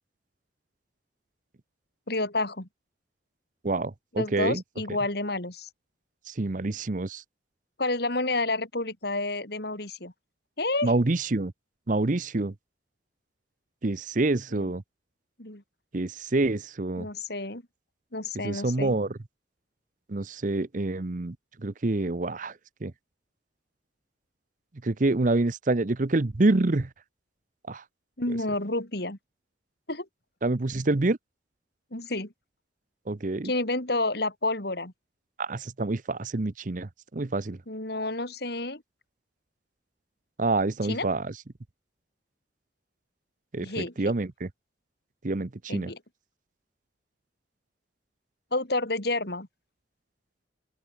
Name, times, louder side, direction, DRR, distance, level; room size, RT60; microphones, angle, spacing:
voice 1, 2.1-2.7 4.2-5.7 7.8-10.1 10.6-10.9 14.5-14.7 15.4-15.6 17.0-17.6 18.1-19.0 28.2-29.2 29.9-30.1 31.9-32.3 33.4-34.9 37.7-38.8 40.8-41.1 43.6-43.9 45.7-46.0 48.5-49.5, left 2 dB, 55° left, 3.8 m, -30 dB
voice 2, 3.6-4.6 6.3-7.2 10.8-11.5 11.9-12.5 13.8-14.8 15.9-17.1 18.4-19.2 20.1-21.4 21.6-22.5 22.8-22.9 24.8-26.9 27.7-27.8 30.4-31.2 33.1-33.5 35.4-37.6 40.4-41.3 43.5-44.5 45.2-45.9, right 2 dB, 40° right, 0.7 m, -27 dB
open air
head